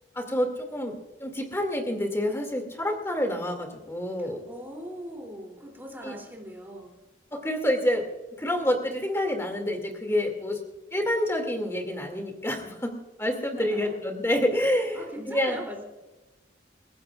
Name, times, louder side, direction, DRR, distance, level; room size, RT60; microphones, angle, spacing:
voice 1, 0.2-4.4 6.0-6.1 7.3-8.1 8.4-10.6 10.9-15.6, left 1 dB, 15° left, 4 dB, 2.4 m, -28 dB
voice 2, 4.2-7.0 13.6-14.0 14.9-15.8, equal, 10° right, 1 dB, 3.0 m, -40 dB
29.0 x 15.5 x 2.5 m, 1.1 s
head